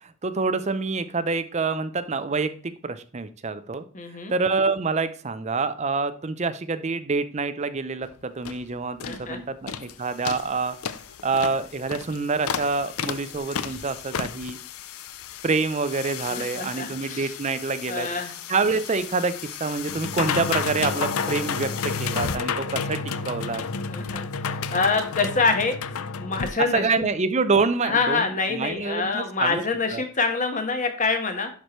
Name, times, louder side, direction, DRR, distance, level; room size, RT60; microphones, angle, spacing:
voice 1, 0.0-3.8 4.3-10.8 11.2-14.6 15.4-18.1 18.5-23.7 26.7-29.6 29.9-30.0, right 4 dB, 30° right, 12 dB, 0.5 m, -26 dB
voice 2, 3.9-4.3 9.0-9.4 16.3-17.3 17.9-18.3 23.9-24.2 24.7-25.8 26.2-26.8 27.8-31.5, left 4 dB, 35° left, 6 dB, 1.3 m, -25 dB
sound 1, 8.0-8.1 8.4-8.6 9.0-9.2 9.7-9.9 10.2-26.5, left 6 dB, 75° left, 0.5 m, -32 dB
11.0 x 4.8 x 3.1 m, 0.43 s
head